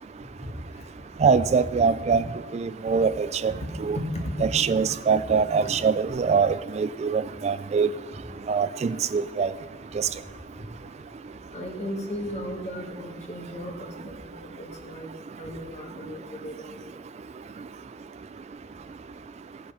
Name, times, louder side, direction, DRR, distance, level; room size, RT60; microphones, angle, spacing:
voice 1, 1.2-2.2 2.5-3.5 3.8-4.0 4.4-7.9 8.5-9.5, right 5 dB, 40° right, 14 dB, 0.3 m, -23 dB
voice 2, 11.5-13.9 14.3-14.5 14.8-15.1 15.4-16.7, equal, 40° left, 1 dB, 2.1 m, -36 dB
17.5 x 6.6 x 5.6 m, 1.3 s
head